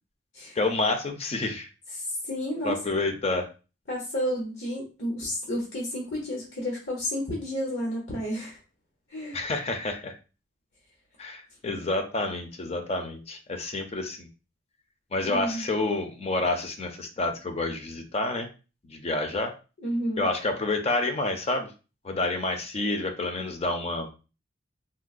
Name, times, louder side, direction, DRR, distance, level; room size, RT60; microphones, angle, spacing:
voice 1, 0.6-1.7 2.6-3.5 9.3-10.2 11.2-14.3 15.1-18.5 18.8-19.5 20.2-21.7 22.0-24.1, left 2 dB, 35° left, 6 dB, 0.5 m, -29 dB
voice 2, 2.3-2.8 3.9-8.6 9.1-9.4 15.3-15.7 19.8-20.3, equal, 85° left, -3 dB, 0.9 m, -31 dB
3.7 x 2.0 x 2.4 m, 0.32 s
head